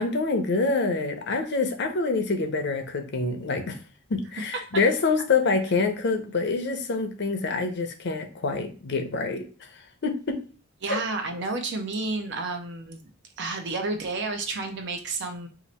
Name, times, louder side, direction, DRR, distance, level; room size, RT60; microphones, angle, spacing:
voice 1, 0.0-3.8 4.1-9.5 10.0-10.4 10.9-11.0, left 3 dB, 60° left, 6 dB, 0.6 m, -26 dB
voice 2, 10.8-13.1 13.4-15.5, right 3 dB, 60° right, 6 dB, 0.7 m, -31 dB
2.8 x 2.5 x 4.2 m, 0.38 s
head